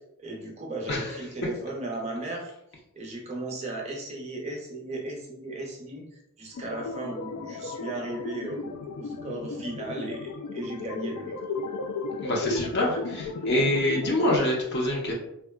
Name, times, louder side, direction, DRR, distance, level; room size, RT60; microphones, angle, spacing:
voice 1, 0.2-2.5 3.0-6.0 6.4-11.4, right 2 dB, 30° right, -1 dB, 0.5 m, -36 dB
sound 1, 6.5-14.4, left 4 dB, 85° left, 0.3 m, -35 dB
voice 2, 12.2-15.1, left 1 dB, 50° left, -2 dB, 0.6 m, -26 dB
3.6 x 2.2 x 2.2 m, 0.79 s
head